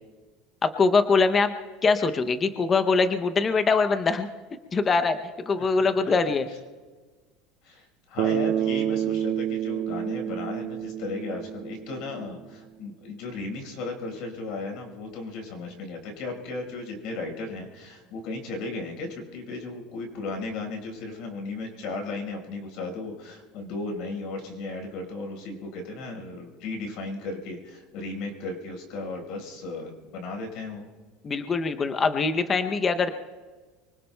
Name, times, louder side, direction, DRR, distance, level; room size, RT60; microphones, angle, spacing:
voice 1, 0.6-1.5 1.8-4.3 4.7-5.2 5.4-6.5 31.2-33.1, left 4 dB, 20° left, 9 dB, 0.6 m, -23 dB
voice 2, 7.6-30.9, left 3 dB, 55° left, 2 dB, 4.6 m, -35 dB
Bass guitar, 8.2-12.4, right 11 dB, 45° right, 0.4 m, -29 dB
24.5 x 24.0 x 2.2 m, 1.4 s
cardioid pair, 165°, 0 cm